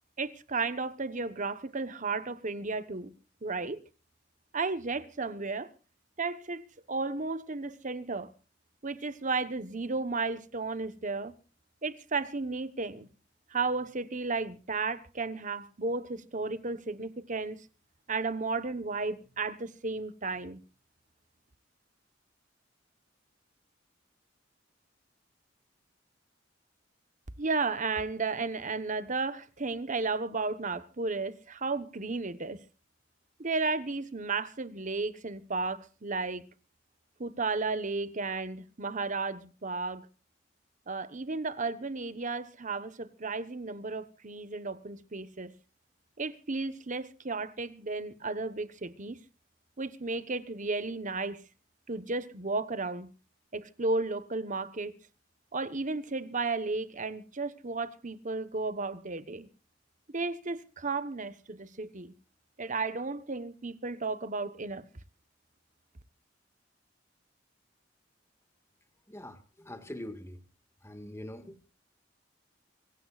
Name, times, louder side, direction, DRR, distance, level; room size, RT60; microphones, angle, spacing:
voice 1, 0.2-3.1 3.4-3.8 4.5-5.7 6.2-6.6 6.9-8.3 8.8-11.3 11.8-13.1 13.5-17.6 18.1-20.6 27.4-32.6 33.4-36.4 37.2-40.1 40.9-45.5 46.2-49.2 49.8-51.4 51.9-53.1 53.5-54.9 55.5-59.5 60.1-62.1 62.6-64.8, right 3 dB, 40° right, 1.2 m, -33 dB
voice 2, 69.1-70.4 70.8-71.7, left 1 dB, 15° left, 1.9 m, -43 dB
25.5 x 16.0 x 2.5 m
head